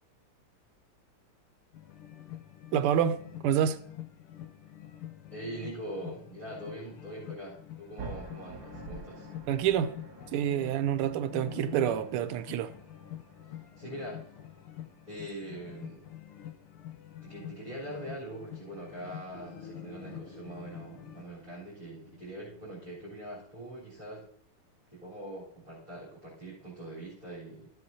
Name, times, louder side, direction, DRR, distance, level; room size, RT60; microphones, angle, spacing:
sound 1, 1.7-21.2, left 12 dB, 85° left, 1.7 m, -46 dB
voice 1, 2.7-3.8 9.5-10.0 10.3-12.7, right 10 dB, 90° right, 1.5 m, -28 dB
voice 2, 5.3-9.3 13.8-14.3 15.1-16.0 17.2-24.3 24.9-27.7, right 1 dB, 15° right, 3.9 m, -43 dB
sound 2, 8.0-16.0, right 5 dB, 65° right, 1.9 m, -49 dB
sound 3, 19.3-24.7, left 2 dB, 35° left, 1.1 m, -53 dB
14.5 x 7.9 x 2.8 m
omnidirectional pair, 2.4 m